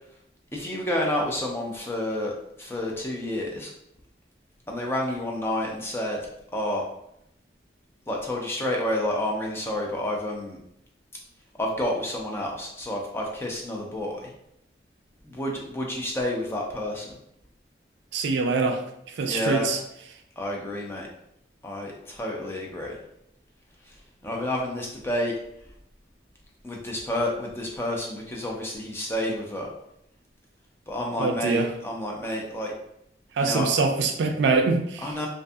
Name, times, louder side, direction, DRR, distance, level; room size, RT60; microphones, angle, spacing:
voice 1, 0.5-2.3 2.6-3.7 4.7-6.2 6.5-6.8 8.1-10.6 11.6-14.3 15.2-17.2 19.3-19.7 20.4-21.1 21.6-23.0 24.2-25.3 26.6-29.7 30.9-32.7 33.4-33.7 35.0-35.3, left 1 dB, 15° left, -1 dB, 0.4 m, -29 dB
voice 2, 18.1-18.8 19.2-19.8 31.2-31.7 33.4-35.1, right 4 dB, 70° right, 5 dB, 0.3 m, -24 dB
2.5 x 2.5 x 2.3 m, 0.76 s
head